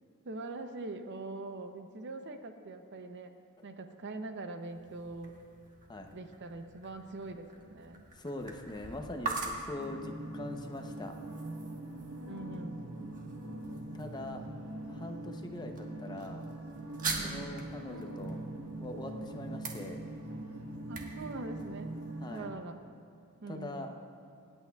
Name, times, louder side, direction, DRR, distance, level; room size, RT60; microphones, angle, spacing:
voice 1, 0.2-3.3 3.6-5.4 6.1-8.1 12.3-12.8 17.1-17.6 20.9-22.0 22.3-22.8 23.4-23.9, right 2 dB, 55° right, 7 dB, 0.7 m, -43 dB
sound 1, 4.6-22.4, right 3 dB, 40° right, 1.3 m, -45 dB
voice 2, 8.1-11.2 13.9-14.4 14.9-16.5 17.2-18.4 18.8-20.0 22.2-22.5 23.5-23.9, left 1 dB, 20° left, 4 dB, 0.7 m, -42 dB
sound 2, 9.8-22.5, right 1 dB, 75° right, 1.3 m, -42 dB
26.0 x 8.9 x 2.3 m, 2.5 s
head